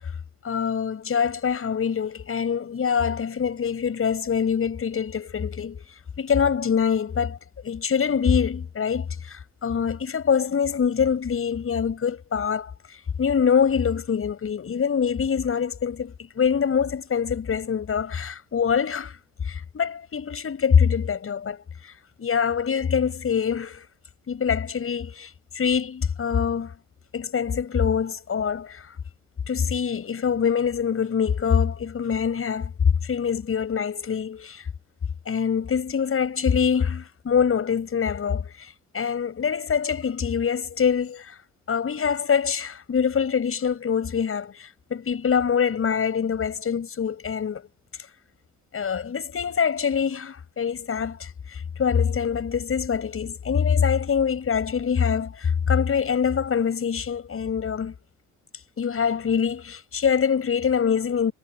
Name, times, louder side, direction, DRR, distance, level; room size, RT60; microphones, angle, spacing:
voice 1, 0.4-5.8 6.2-7.4 7.6-12.7 13.2-19.2 19.5-21.9 22.2-23.9 24.3-25.3 25.5-26.7 27.1-28.9 29.5-32.7 33.0-34.7 35.3-38.7 38.9-41.3 41.7-47.7 48.7-57.9 58.8-61.3, left 7 dB, 45° left, 7.4 m, -24 dB
cardioid pair, 90°, 30 cm